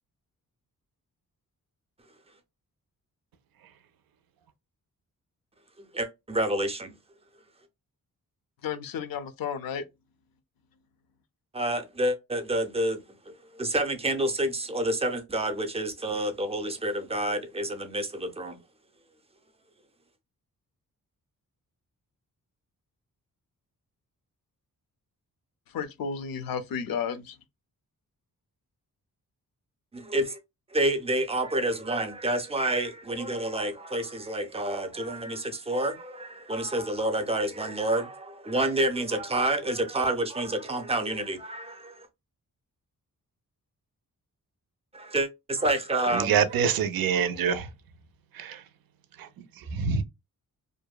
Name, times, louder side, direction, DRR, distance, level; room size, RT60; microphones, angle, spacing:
voice 1, 5.8-7.0 11.5-18.6 29.9-30.4 30.7-42.1 44.9-46.7, right 1 dB, 20° right, 0.4 m, -29 dB
voice 2, 8.6-9.8 25.7-27.4, left 7 dB, 80° left, 0.5 m, -32 dB
voice 3, 46.1-47.7 48.3-48.6 49.2-49.3 49.6-50.0, right 7 dB, 90° right, 0.5 m, -25 dB
2.6 x 2.1 x 2.2 m
wide cardioid pair, 155°, 35 cm